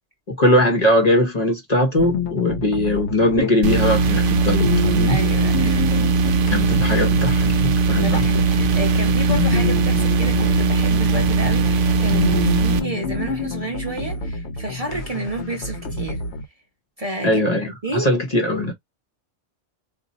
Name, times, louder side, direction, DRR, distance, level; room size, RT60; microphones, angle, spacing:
voice 1, 0.3-5.2 6.5-8.2 17.2-18.7, left 1 dB, 35° left, 0.9 m, -20 dB
sound 1, 2.0-16.4, left 4 dB, 70° left, 1.0 m, -28 dB
sound 2, 3.6-12.8, right 4 dB, 60° right, 0.6 m, -19 dB
voice 2, 5.0-6.1 7.9-16.2 17.0-17.4 17.8-18.2, right 1 dB, 35° right, 0.9 m, -30 dB
2.6 x 2.5 x 4.0 m
omnidirectional pair, 1.2 m